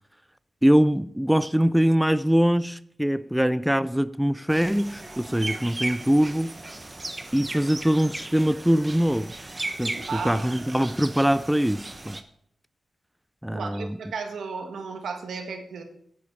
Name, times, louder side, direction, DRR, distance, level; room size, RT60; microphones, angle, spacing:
voice 1, 0.6-6.5 7.3-9.3 9.8-12.2 13.4-14.0, equal, 5° right, 0.4 m, -23 dB
sound 1, 4.5-12.2, right 2 dB, 25° right, 1.0 m, -36 dB
voice 2, 9.9-10.5 13.5-15.8, right 5 dB, 90° right, 1.5 m, -34 dB
12.5 x 8.5 x 4.6 m
cardioid pair, 80°, 0 cm